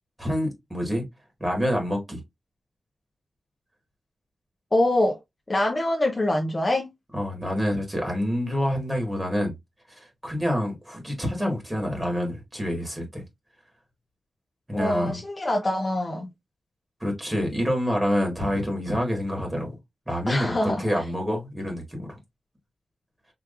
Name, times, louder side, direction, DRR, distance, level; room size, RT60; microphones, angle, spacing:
voice 1, 0.2-1.0 1.4-2.2 7.1-9.5 9.9-13.2 14.7-15.2 17.0-19.7 20.1-22.2, equal, 15° right, 2.0 m, -27 dB
voice 2, 4.7-5.2 5.5-6.9 14.7-16.3 20.3-20.8, left 1 dB, 30° left, 0.8 m, -24 dB
4.8 x 3.1 x 2.6 m
wide cardioid pair, 110°, 0 cm